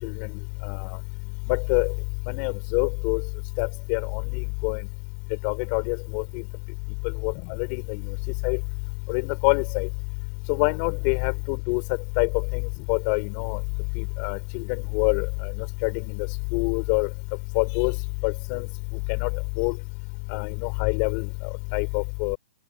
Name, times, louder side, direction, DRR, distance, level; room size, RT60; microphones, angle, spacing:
voice 1, 1.5-1.9 2.3-3.2 3.6-4.8 5.4-6.2 7.2-8.0 8.4-8.6 9.1-9.9 10.5-11.8 12.2-13.6 14.0-16.3 16.5-17.1 17.5-17.9 18.2-18.7 19.2-19.3 19.6-19.7 20.3-21.3 21.7-22.4, left 37 dB, 35° left, 6.0 m, -26 dB
hypercardioid pair, 150°, 5 cm